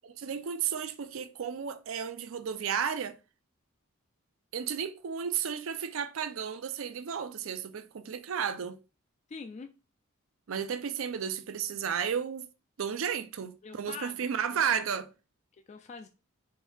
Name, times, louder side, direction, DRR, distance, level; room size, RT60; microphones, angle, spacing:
voice 1, 0.0-3.2 4.5-8.8 10.5-12.5 12.8-15.1, right 7 dB, 75° right, 0.5 m, -33 dB
voice 2, 9.3-9.7 13.6-14.6 15.7-16.1, left 4 dB, 35° left, 0.3 m, -44 dB
4.5 x 2.7 x 3.3 m
head